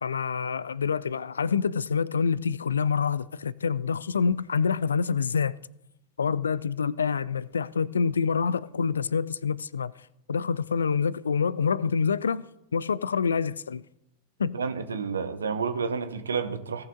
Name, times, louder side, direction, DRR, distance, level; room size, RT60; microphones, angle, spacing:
voice 1, 0.0-5.6 6.2-9.9 10.3-12.4 12.7-13.8 14.4-14.6, left 6 dB, 70° left, 0.3 m, -26 dB
voice 2, 14.5-16.8, right 5 dB, 70° right, 0.9 m, -30 dB
17.0 x 5.9 x 3.7 m
figure-of-eight pair, 90°, 0 cm